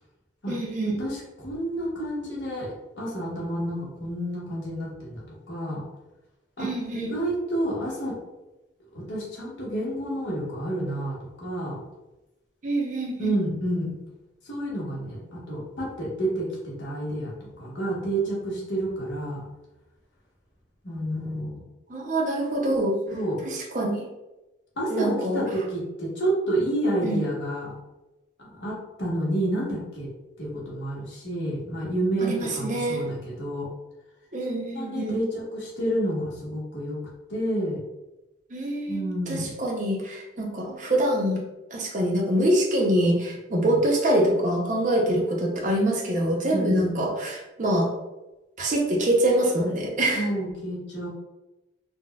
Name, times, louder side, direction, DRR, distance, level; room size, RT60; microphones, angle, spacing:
voice 1, 0.5-1.0 6.6-7.1 12.6-13.4 21.9-22.9 23.5-24.0 24.9-25.5 27.0-27.2 32.2-33.0 34.3-35.2 38.5-41.4 41.7-47.9 48.6-50.3, right 1 dB, 40° right, -1 dB, 0.6 m, -25 dB
voice 2, 1.0-5.2 5.5-5.8 6.6-8.2 8.9-11.8 13.2-13.9 14.4-19.4 20.8-21.7 23.1-23.4 24.8-27.7 28.4-30.1 30.4-33.7 34.7-37.0 37.3-37.8 38.9-39.5 43.5-43.8 45.0-45.2 46.5-47.0 50.1-51.1, right 1 dB, 75° left, -4 dB, 1.0 m, -29 dB
3.9 x 2.1 x 2.2 m, 1.0 s
head